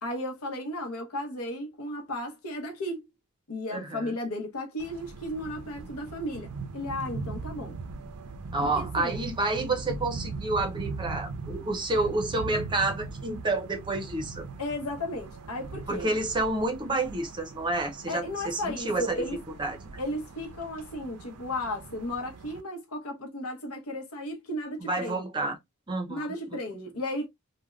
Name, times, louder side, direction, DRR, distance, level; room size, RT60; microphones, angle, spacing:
voice 1, 0.0-3.0 3.5-7.8 8.6-9.2 14.6-16.1 18.1-19.4 20.0-25.2 26.1-27.3, left 1 dB, 75° left, 0.8 m, -34 dB
voice 2, 3.7-4.1 8.5-14.5 15.9-19.3 19.6-19.8 24.8-25.6 25.9-26.3, right 2 dB, 20° right, 0.6 m, -29 dB
sound 1, 4.8-22.6, right 4 dB, 80° right, 0.5 m, -40 dB
3.3 x 2.1 x 2.2 m
head